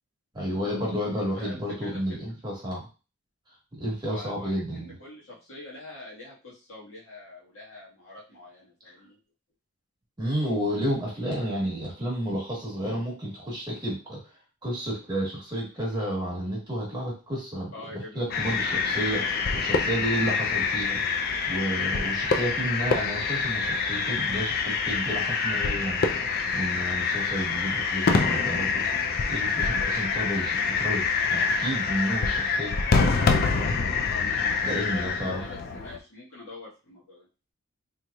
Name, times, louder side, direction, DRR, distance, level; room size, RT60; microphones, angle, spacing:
voice 1, 0.3-2.9 3.7-4.9 9.0-9.1 10.2-14.2 14.6-21.0 21.5-26.0 26.5-28.8 29.3-32.8 33.7-34.0 34.6-35.4, equal, 20° right, -4 dB, 1.2 m, -31 dB
voice 2, 1.4-2.3 4.1-9.2 17.7-18.2 34.1-37.3, left 2 dB, 70° left, -5 dB, 1.6 m, -44 dB
sound 1, 18.3-36.0, left 5 dB, 45° left, 0.4 m, -26 dB
3.7 x 2.9 x 2.3 m, 0.33 s
head